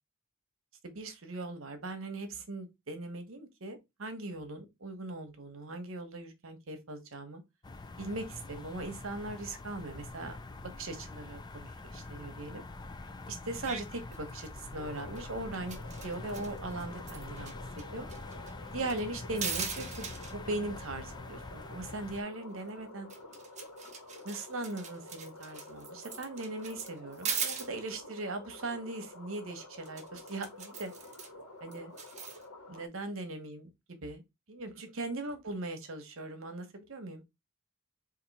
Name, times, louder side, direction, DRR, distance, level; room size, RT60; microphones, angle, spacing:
voice 1, 0.8-7.4 8.0-10.4 10.8-12.6 13.3-15.8 16.0-18.1 18.7-23.1 24.2-30.9 31.6-31.9 32.7-34.2 34.5-37.2, right 2 dB, 65° right, 1.0 m, -40 dB
sound 1, 7.6-22.2, left 2 dB, 20° left, 0.4 m, -45 dB
sound 2, 13.6-13.8 14.1-14.6 15.0-15.2 15.5-17.5 17.8-17.9 18.1-19.0 19.3-20.3 22.7-22.8 23.1-27.7 29.9-31.3 31.7-32.4, right 6 dB, 35° right, 0.9 m, -39 dB
sound 3, 14.8-32.9, left 2 dB, 85° left, 1.5 m, -50 dB
4.3 x 2.7 x 4.0 m
head